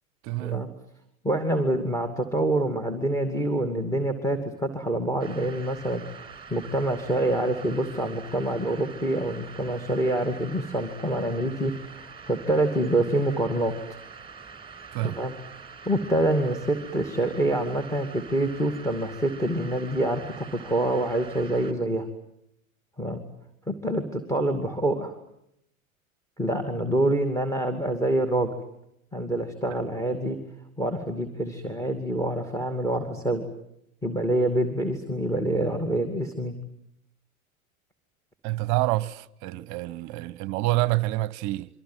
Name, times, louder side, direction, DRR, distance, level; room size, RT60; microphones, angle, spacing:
voice 1, 0.2-0.7 14.9-15.2 38.4-41.7, right 18 dB, 45° right, 1.0 m, -27 dB
voice 2, 1.2-13.7 15.0-15.3 15.9-22.1 23.0-23.2 23.7-25.1 26.4-28.5 29.1-30.4 30.8-33.5 34.0-36.5, right 1 dB, 5° left, 2.5 m, -26 dB
sound 1, 5.2-21.7, right 6 dB, 10° right, 5.1 m, -45 dB
28.5 x 24.5 x 7.5 m
figure-of-eight pair, 85°, 43 cm